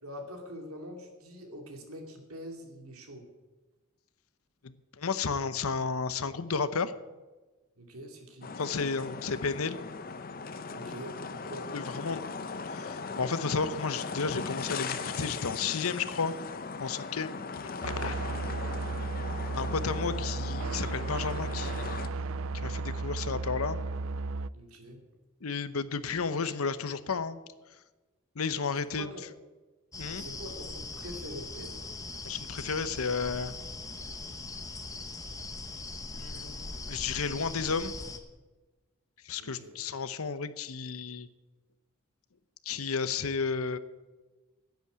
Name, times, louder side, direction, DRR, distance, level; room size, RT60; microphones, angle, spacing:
voice 1, 0.0-3.3 7.8-8.5 10.7-11.7 24.5-25.0 29.0-29.2 30.2-31.8 39.4-39.7, equal, 85° right, 3 dB, 2.6 m, -44 dB
voice 2, 4.6-6.9 8.6-9.8 11.7-12.3 12.7-16.3 16.8-17.3 17.8-18.2 19.5-23.8 25.4-27.4 28.4-29.1 30.0-30.3 32.2-33.5 36.1-37.9 39.2-41.3 42.6-43.8, left 5 dB, 80° left, 13 dB, 0.8 m, -32 dB
sound 1, 8.4-22.1, left 4 dB, 40° left, 0.7 m, -39 dB
sound 2, 17.8-24.5, right 3 dB, 65° right, 0.4 m, -34 dB
sound 3, 29.9-38.2, left 3 dB, 15° left, 0.9 m, -40 dB
10.5 x 8.5 x 9.1 m, 1.2 s
head